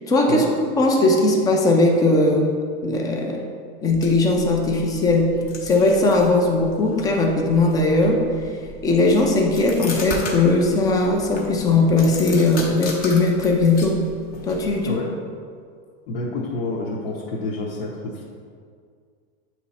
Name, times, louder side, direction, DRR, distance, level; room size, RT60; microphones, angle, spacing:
voice 1, 0.1-0.4 0.8-2.5 2.8-3.4 3.8-5.3 5.6-8.2 8.8-14.0 14.5-14.9, left 2 dB, 15° left, 1 dB, 0.3 m, -18 dB
sound 1, 3.9-14.9, left 3 dB, 30° left, 0.7 m, -37 dB
voice 2, 16.1-18.2, left 2 dB, 70° left, -5 dB, 0.9 m, -28 dB
7.9 x 3.0 x 4.1 m, 2.1 s
supercardioid pair, 165°, 31 cm